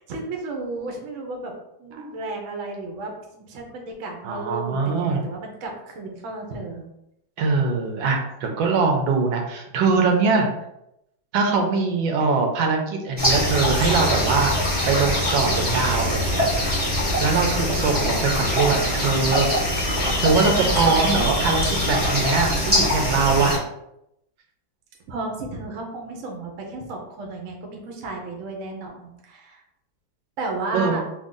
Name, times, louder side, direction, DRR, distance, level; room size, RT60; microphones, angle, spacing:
voice 1, 0.1-1.5 1.8-6.8 20.3-21.0 25.1-29.6 30.4-31.0, right 2 dB, 60° right, 1 dB, 0.8 m, -33 dB
voice 2, 4.2-5.2 7.4-10.5 11.3-14.6 14.9-16.7 17.2-19.5 20.2-23.6 30.7-31.0, right 4 dB, 80° right, 3 dB, 1.4 m, -22 dB
sound 1, 13.2-23.6, left 1 dB, 10° right, 0.7 m, -23 dB
3.5 x 2.2 x 3.7 m, 0.82 s
omnidirectional pair, 2.1 m